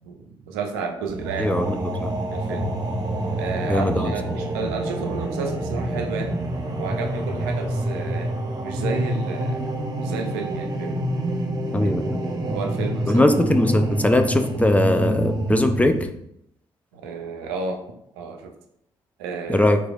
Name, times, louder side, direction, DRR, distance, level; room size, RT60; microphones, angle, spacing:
voice 1, 0.0-1.6 2.3-2.7 3.3-6.3 6.8-8.3 8.6-11.0 11.7-11.9 12.5-13.2 16.9-17.8 18.2-18.5 19.2-19.6, right 4 dB, 70° right, 4 dB, 0.4 m, -32 dB
sound 1, 1.1-16.1, right 1 dB, 35° right, 0.7 m, -27 dB
voice 2, 1.4-2.1 3.6-4.1 11.7-12.2 13.1-16.0 19.5-19.8, left 1 dB, 10° left, 6 dB, 0.4 m, -20 dB
3.8 x 3.0 x 2.3 m, 0.76 s
figure-of-eight pair, 40°, 13 cm